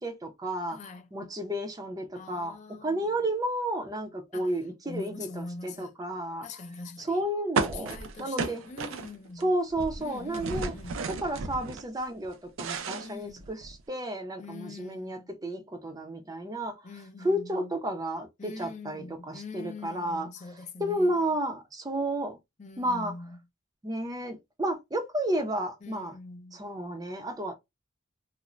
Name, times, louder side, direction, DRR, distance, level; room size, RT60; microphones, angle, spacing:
voice 1, 0.0-0.8 1.1-6.5 7.0-8.6 9.4-10.7 11.1-16.8 17.2-20.3 20.8-22.4 22.8-23.1 23.8-26.1 26.5-27.5, right 1 dB, 20° right, 0.5 m, -32 dB
voice 2, 0.7-1.1 2.1-3.2 4.3-4.5 4.8-5.9 6.4-7.2 7.6-9.5 10.0-11.0 13.0-13.5 14.4-15.3 16.8-17.7 18.4-21.4 22.6-23.4 25.8-26.6, left 3 dB, 35° left, 0.4 m, -43 dB
sound 1, 7.6-9.4 9.7-11.8 12.2-13.8, right 4 dB, 80° right, 0.4 m, -33 dB
2.5 x 2.0 x 3.0 m
head